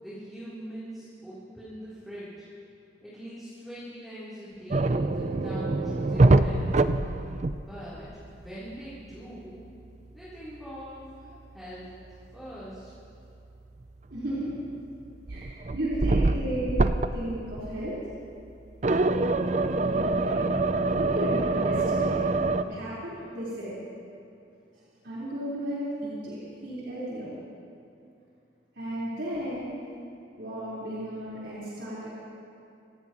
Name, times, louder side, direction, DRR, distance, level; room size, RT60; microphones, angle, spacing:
voice 1, 0.0-2.3 3.0-6.9 7.6-9.7 10.1-11.9 12.3-12.9, equal, ahead, -12 dB, 3.7 m, -43 dB
sound 1, 4.7-8.0 8.2-8.5 11.9-12.0 14.3-14.8 15.3-17.3 17.6-17.9 18.8-22.6, right 2 dB, 40° right, 0.5 m, -25 dB
voice 2, 14.1-14.5 15.3-16.8 17.1-18.0 19.7-20.5 21.0-22.2 22.6-23.7 25.0-27.3 28.8-29.7 30.4-32.1, right 1 dB, 80° right, -9 dB, 4.4 m, -34 dB
27.0 x 16.5 x 3.1 m, 2.7 s
head